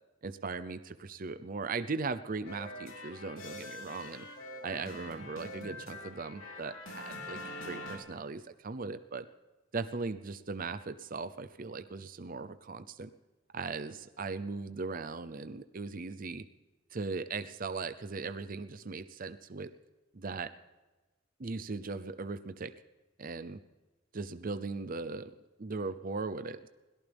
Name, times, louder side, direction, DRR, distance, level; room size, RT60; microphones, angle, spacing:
voice 1, 0.2-4.3 4.6-9.2 9.7-13.1 13.5-16.4 16.9-19.7 20.1-20.5 21.4-22.7 23.2-23.6 24.1-25.3 25.6-26.7, right 4 dB, 45° right, 11 dB, 0.7 m, -38 dB
sound 1, 2.5-8.0, left 1 dB, 85° left, 3.6 m, -44 dB
21.5 x 17.5 x 3.5 m, 1.1 s
head